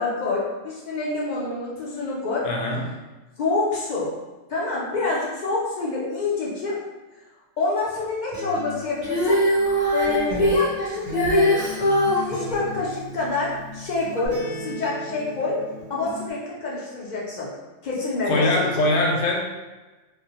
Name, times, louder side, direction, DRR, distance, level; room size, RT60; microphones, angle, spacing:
voice 1, 0.0-2.5 3.4-4.1 4.5-6.8 7.6-9.4 9.9-11.6 12.2-15.6 15.9-17.5 17.8-18.9, left 3 dB, 60° left, -5 dB, 0.5 m, -27 dB
voice 2, 2.4-3.0 18.2-19.4, left 2 dB, 75° left, 0 dB, 0.9 m, -22 dB
Acoustic guitar, 8.3-16.3, right 1 dB, 55° right, 0.7 m, -36 dB
Female singing, 9.0-12.3 14.3-14.4, left 1 dB, 10° left, 0.8 m, -21 dB
2.5 x 2.1 x 2.7 m, 1.2 s
omnidirectional pair, 1.3 m